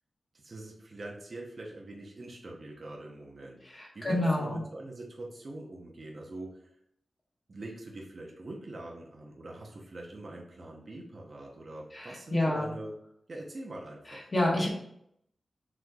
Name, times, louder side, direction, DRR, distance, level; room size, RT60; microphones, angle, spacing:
voice 1, 0.3-3.6 3.9-6.6 7.5-13.0 13.3-14.3, right 2 dB, 45° right, -2 dB, 0.8 m, -43 dB
voice 2, 3.6-4.6 11.9-12.7 14.1-14.7, left 1 dB, 35° left, -3 dB, 1.3 m, -29 dB
5.9 x 3.1 x 2.4 m, 0.73 s
wide cardioid pair, 105°, 0 cm